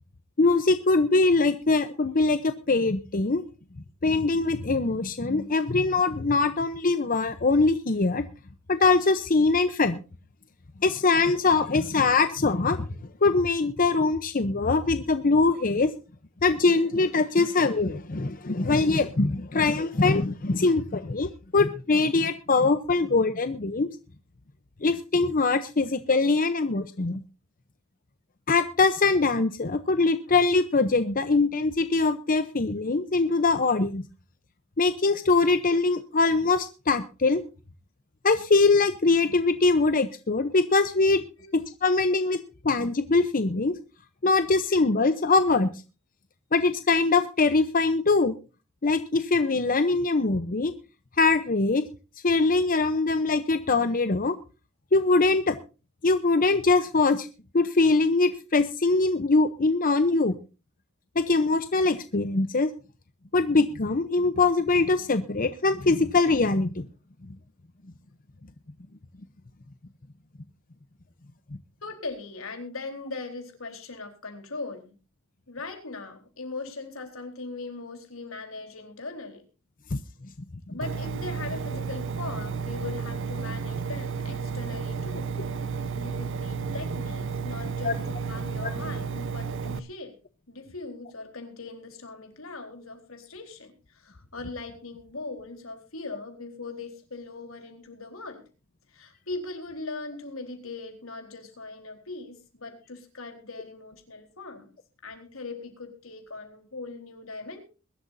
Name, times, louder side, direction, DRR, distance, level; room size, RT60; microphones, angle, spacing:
voice 1, 0.4-3.4 4.0-8.2 8.7-10.0 10.8-12.9 13.2-15.9 16.4-23.9 24.8-27.2 28.5-34.0 34.8-37.4 38.2-41.2 41.5-42.4 42.6-43.7 44.2-45.7 46.5-48.3 48.8-50.7 51.2-51.8 52.2-54.4 54.9-55.6 56.0-57.3 57.5-60.4 61.2-62.7 63.3-66.8 79.9-80.0 87.8-87.9 88.6-88.7, left 3 dB, 45° left, 10 dB, 0.8 m, -22 dB
voice 2, 71.8-74.9 75.5-79.4 80.7-85.3 85.7-90.2 90.5-98.4 98.9-104.7 105.0-107.6, left 3 dB, 80° left, 5 dB, 4.0 m, -40 dB
Engine, 80.8-89.8, right 5 dB, 65° right, 0.9 m, -32 dB
22.0 x 12.5 x 2.7 m, 0.34 s
head